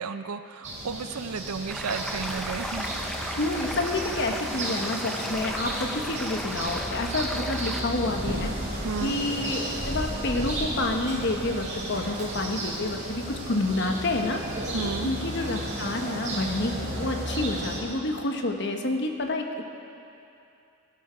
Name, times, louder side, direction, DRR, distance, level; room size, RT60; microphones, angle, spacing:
voice 1, 0.0-2.8 3.2-3.4 8.8-9.2 14.7-15.1, right 5 dB, 85° right, 10 dB, 0.5 m, -33 dB
sound 1, 0.6-17.8, right 1 dB, 35° right, 3.5 m, -33 dB
sound 2, 1.7-7.8, equal, ahead, 0.5 m, -36 dB
voice 2, 3.4-14.4 14.8-19.7, left 2 dB, 50° left, 4 dB, 1.1 m, -29 dB
17.0 x 11.5 x 5.1 m, 2.7 s
head